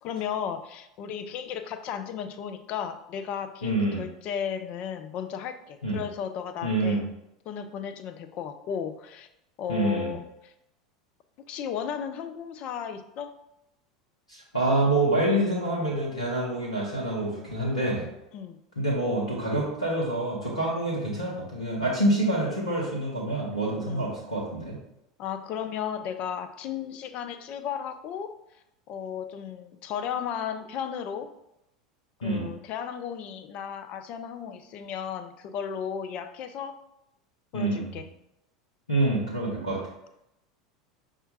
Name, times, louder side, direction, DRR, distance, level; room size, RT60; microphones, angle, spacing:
voice 1, 0.0-7.0 7.5-9.3 9.6-10.5 11.4-13.3 18.3-18.6 23.9-24.1 25.2-28.3 28.9-31.3 32.2-36.8 37.5-38.1, left 8 dB, 45° left, 8 dB, 0.4 m, -34 dB
voice 2, 3.6-4.1 5.8-6.0 6.6-7.0 9.7-10.1 14.3-18.1 18.8-24.7 32.2-32.5 37.5-38.0 38.9-39.8, right 1 dB, 90° left, -6 dB, 0.8 m, -27 dB
5.4 x 2.4 x 2.8 m, 0.84 s
figure-of-eight pair, 80°, 3 cm